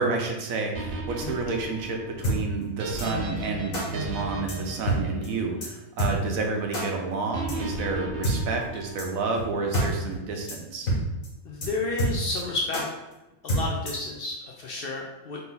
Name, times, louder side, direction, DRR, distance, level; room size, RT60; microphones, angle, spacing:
voice 1, 0.0-10.9, right 3 dB, 85° right, 2 dB, 1.1 m, -30 dB
sound 1, 0.7-6.0 7.3-9.3, right 1 dB, 60° right, 0.8 m, -36 dB
sound 2, 2.2-2.4 3.0-3.1 3.7-3.8 4.5-4.6 4.9-5.0 5.2-5.3 5.6-5.7 6.0-6.1 6.7-6.8 7.5-7.6 8.2-8.4 9.0-9.1 9.4-9.5 9.7-9.9 10.1-10.2 10.5-10.6 10.9-11.0 11.2-11.3 11.6-11.7 12.0-12.4 12.7-12.8 13.5-14.1, right 1 dB, 85° left, 1.9 m, -26 dB
voice 2, 11.4-12.8 13.4-15.4, left 3 dB, 60° left, -1 dB, 0.6 m, -31 dB
3.9 x 2.6 x 3.9 m, 1.0 s
omnidirectional pair, 1.4 m